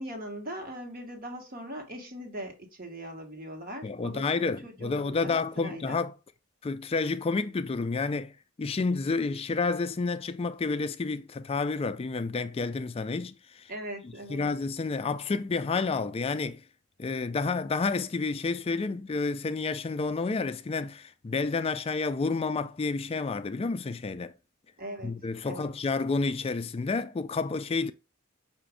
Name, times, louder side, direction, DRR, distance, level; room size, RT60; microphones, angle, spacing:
voice 1, 0.0-6.0 13.7-14.4 24.8-25.7, right 1 dB, 40° right, 1.2 m, -40 dB
voice 2, 3.8-6.1 6.6-8.3 8.6-13.7 14.3-16.6 17.0-24.3 25.0-27.9, left 4 dB, 25° left, 0.3 m, -30 dB
5.8 x 2.5 x 3.3 m
head